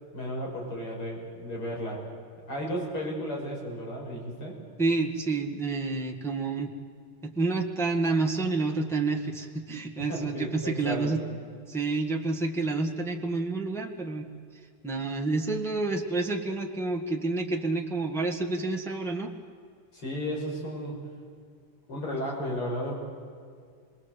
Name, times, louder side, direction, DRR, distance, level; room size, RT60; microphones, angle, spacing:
voice 1, 0.1-2.1 2.4-4.6 10.0-11.1 19.9-21.0 21.9-22.9, equal, 75° left, -2 dB, 6.7 m, -34 dB
voice 2, 4.8-6.7 7.2-11.2 11.7-14.3 14.8-19.3, right 3 dB, ahead, 1 dB, 1.4 m, -29 dB
27.0 x 21.5 x 8.2 m, 2.2 s
omnidirectional pair, 2.4 m